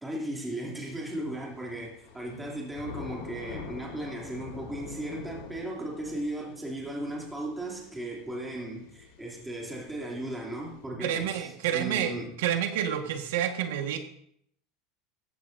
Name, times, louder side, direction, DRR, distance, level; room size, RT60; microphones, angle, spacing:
voice 1, 0.0-12.3, right 1 dB, 5° right, -3 dB, 2.9 m, -36 dB
Thunder / Rain, 0.9-10.8, left 6 dB, 75° left, 2.9 m, -46 dB
voice 2, 11.0-14.0, right 10 dB, 85° right, 5 dB, 1.6 m, -29 dB
17.0 x 15.0 x 2.7 m, 0.67 s
supercardioid pair, 170°, 0 cm